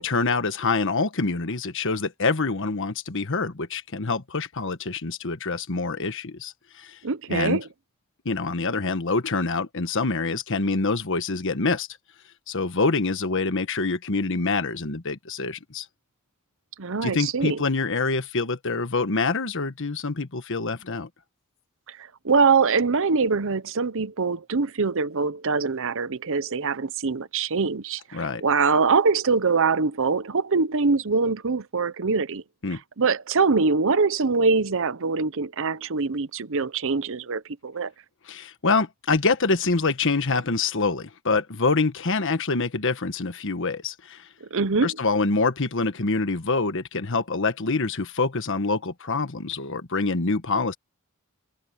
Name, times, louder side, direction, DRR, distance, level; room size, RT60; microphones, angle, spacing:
voice 1, 0.0-7.0 7.3-7.6 8.2-11.9 12.5-15.8 17.0-21.1 28.1-28.4 32.6-32.8 38.3-44.2 44.8-50.7, left 3 dB, 60° left, 1.4 m, -26 dB
voice 2, 7.0-7.6 16.8-17.6 21.9-32.4 33.0-37.9 44.4-45.0, right 4 dB, 65° right, 0.9 m, -23 dB
head